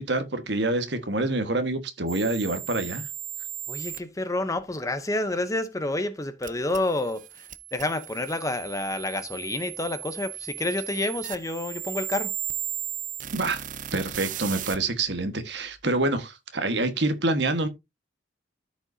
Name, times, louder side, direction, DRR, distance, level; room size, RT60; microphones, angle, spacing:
voice 1, 0.0-3.0 13.3-13.6 13.9-17.7, right 2 dB, 65° right, 1.4 m, -26 dB
sound 1, 2.1-4.0 6.4-14.8, right 12 dB, 45° right, 0.6 m, -36 dB
voice 2, 3.7-7.2 7.7-12.3, left 2 dB, 15° left, 0.7 m, -29 dB
13.5 x 5.2 x 2.7 m
head